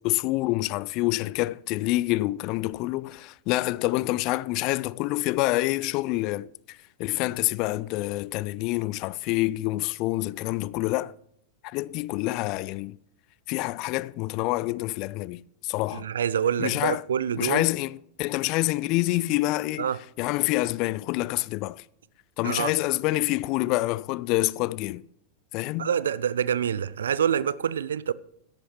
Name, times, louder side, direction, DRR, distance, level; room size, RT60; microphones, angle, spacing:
voice 1, 0.0-11.1 11.6-13.0 13.5-16.1 16.6-17.0 17.4-19.9 20.2-21.8 22.4-25.1 25.5-25.9, left 19 dB, 40° left, 0.3 m, -27 dB
voice 2, 15.9-17.7 19.8-20.0 22.4-22.7 25.8-28.1, right 8 dB, 65° right, 0.4 m, -26 dB
13.5 x 11.0 x 3.2 m
figure-of-eight pair, 90°, 0 cm